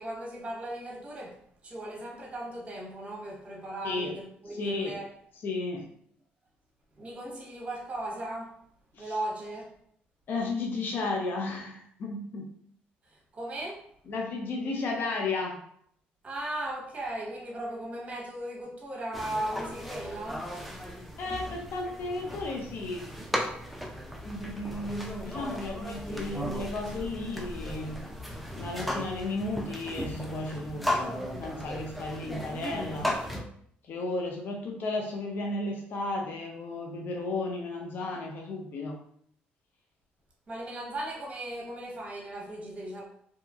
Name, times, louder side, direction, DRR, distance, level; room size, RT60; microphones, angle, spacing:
voice 1, 0.0-1.4 1.6-5.1 7.0-8.5 9.0-9.7 13.0-13.9 16.2-20.5 40.5-43.0, right 1 dB, 30° right, -2 dB, 1.0 m, -37 dB
voice 2, 4.6-5.0 5.4-5.9 8.9-9.1 10.3-12.5 14.1-15.6 21.2-23.1 24.2-28.0 28.6-31.1 31.4-33.2 33.9-39.0, left 2 dB, 55° left, 0 dB, 0.5 m, -34 dB
sound 1, 19.1-33.4, equal, ahead, 0.4 m, -36 dB
2.7 x 2.3 x 2.4 m, 0.66 s
cardioid pair, 85°, 4 cm